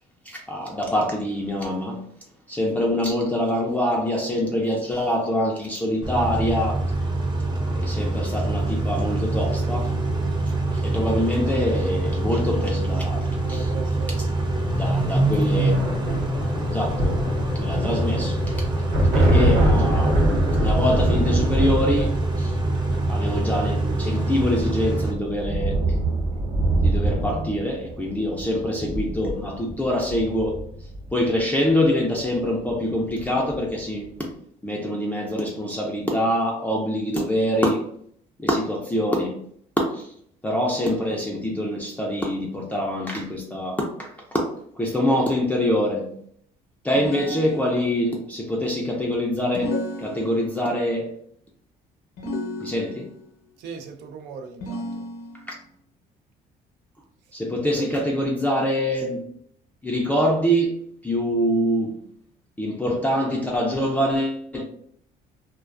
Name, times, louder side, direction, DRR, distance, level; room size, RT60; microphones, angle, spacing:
voice 1, 0.3-2.0 2.5-6.8 7.7-9.9 10.7-13.7 14.6-15.7 16.7-17.1 17.6-18.4 19.1-20.2 20.5-22.6 23.1-25.8 26.8-30.6 31.1-34.3 34.6-37.9 38.4-39.4 39.8-40.1 40.4-46.1 46.8-51.1 52.6-53.1 55.5-55.6 57.3-59.2 59.8-60.8 61.0-61.9 62.6-64.6, equal, 10° left, 0.4 m, -25 dB
Car / Idling / Accelerating revving vroom, 6.0-25.1, right 2 dB, 25° right, 0.7 m, -25 dB
voice 2, 13.5-14.4 53.6-55.1 57.6-57.9, right 5 dB, 85° right, 0.4 m, -38 dB
sound 1, 15.5-31.3 32.5-32.7 33.0-33.7, right 1 dB, 50° right, 1.0 m, -24 dB
sound 2, 47.0-48.1 49.6-50.7 52.2-53.2 54.6-55.6, left 1 dB, 70° left, 0.7 m, -32 dB
2.3 x 2.2 x 2.4 m
cardioid pair, 110°, 17 cm